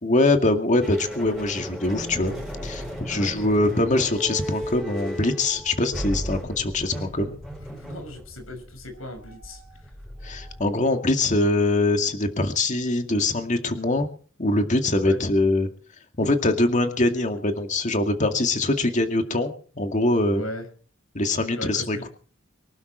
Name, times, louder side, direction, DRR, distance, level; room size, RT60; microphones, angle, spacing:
voice 1, 0.0-2.3 2.6-7.3 10.2-14.1 14.4-15.7 16.2-19.5 19.8-20.4 21.1-22.1, left 2 dB, 35° left, 6 dB, 2.2 m, -23 dB
sound 1, 0.8-10.9, equal, ahead, 7.4 m, -35 dB
voice 2, 7.7-9.9 15.0-15.2 20.3-20.7 21.5-22.1, left 1 dB, 85° left, 7 dB, 6.0 m, -37 dB
24.0 x 12.0 x 4.5 m, 0.43 s
head